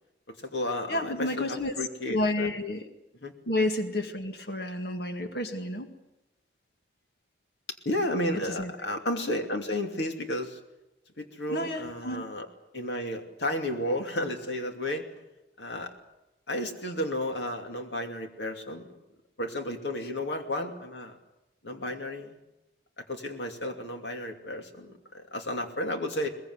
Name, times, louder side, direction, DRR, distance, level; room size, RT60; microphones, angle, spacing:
voice 1, 0.3-2.5 3.2-3.3 7.8-10.6 11.2-12.5 12.7-15.1 15.6-15.9 16.5-19.0 19.4-21.2 21.6-22.4 23.0-26.3, left 1 dB, 90° left, 4 dB, 2.7 m, -32 dB
voice 2, 0.9-1.7 2.1-2.9 3.5-5.9 8.6-8.7 11.5-12.2, left 1 dB, 65° left, 6 dB, 1.9 m, -30 dB
21.5 x 21.0 x 8.0 m, 0.96 s
head